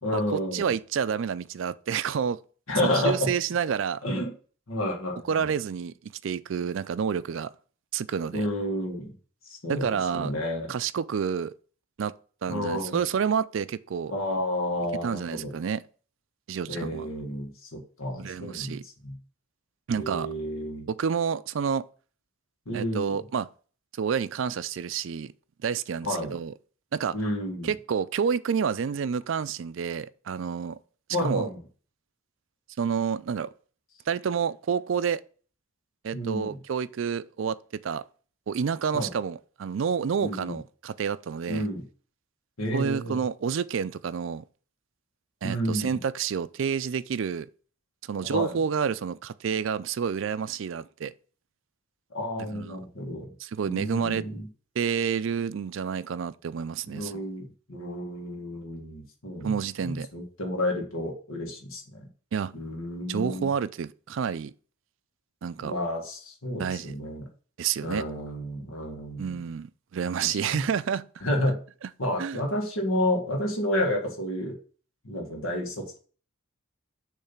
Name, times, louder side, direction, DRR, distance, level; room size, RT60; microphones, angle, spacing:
voice 1, 0.0-0.7 2.7-3.3 4.0-4.3 4.7-5.5 8.3-9.1 9.5-9.9 10.1-10.7 12.5-13.0 14.1-15.5 16.7-19.2 20.0-20.9 22.7-23.2 26.0-26.3 27.1-27.7 31.1-31.6 36.1-36.6 38.9-39.1 40.2-40.6 41.5-41.8 42.6-43.2 45.4-46.0 48.2-48.6 52.1-53.3 53.6-54.5 56.9-62.1 62.5-63.5 65.6-67.3 67.8-69.3 70.2-70.6 71.2-71.6 72.0-74.6 75.0-76.0, left 1 dB, 80° left, 1.7 m, -30 dB
voice 2, 0.5-2.4 2.8-4.0 5.3-7.5 7.9-8.5 9.7-10.3 10.7-11.5 12.0-12.1 12.4-14.1 15.0-15.8 16.5-17.1 18.2-18.8 19.9-20.3 20.9-21.8 22.7-23.5 24.0-25.3 25.6-26.5 26.9-27.2 27.6-30.8 31.2-31.5 32.8-33.5 34.1-35.2 36.0-37.6 37.8-38.0 38.5-41.7 42.7-44.4 45.4-47.5 48.0-51.1 52.5-52.8 53.4-54.3 54.8-57.2 59.4-60.1 62.3-62.5 63.1-64.5 65.4-65.7 66.6-66.9 67.6-68.1 69.2-71.1 72.2-72.4, right 7 dB, 60° right, 0.4 m, -29 dB
6.7 x 3.2 x 5.8 m
head